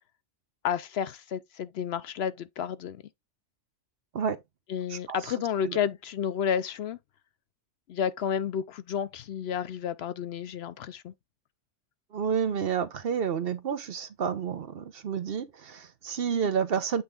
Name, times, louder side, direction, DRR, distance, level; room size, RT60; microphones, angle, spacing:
voice 1, 0.6-3.0 4.7-7.0 7.9-11.1, left 8 dB, 65° left, 0.8 m, -31 dB
voice 2, 12.1-17.0, right 7 dB, 60° right, 0.9 m, -30 dB
8.1 x 3.4 x 3.7 m
omnidirectional pair, 1.2 m